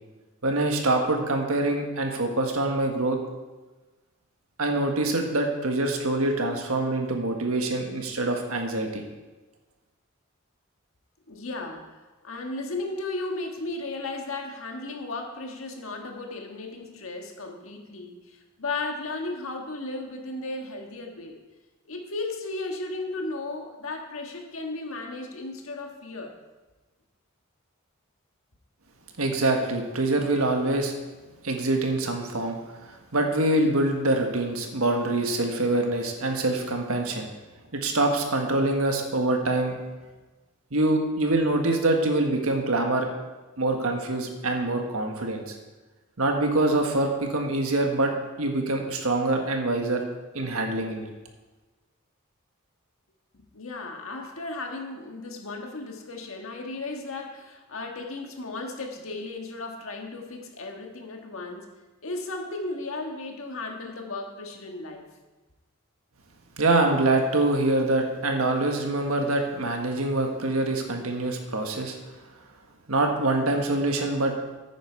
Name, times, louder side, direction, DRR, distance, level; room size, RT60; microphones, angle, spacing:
voice 1, 0.4-3.2 4.6-9.0 29.2-30.9 31.4-37.3 37.7-39.8 40.7-43.1 43.6-45.6 46.2-50.0 50.3-51.1 66.6-72.0 72.9-74.3, right 2 dB, 80° right, 3 dB, 1.6 m, -25 dB
voice 2, 11.3-21.4 21.8-26.3 53.3-61.7 62.0-65.1, left 2 dB, 70° left, 2 dB, 1.7 m, -35 dB
10.0 x 9.1 x 4.6 m, 1.2 s
head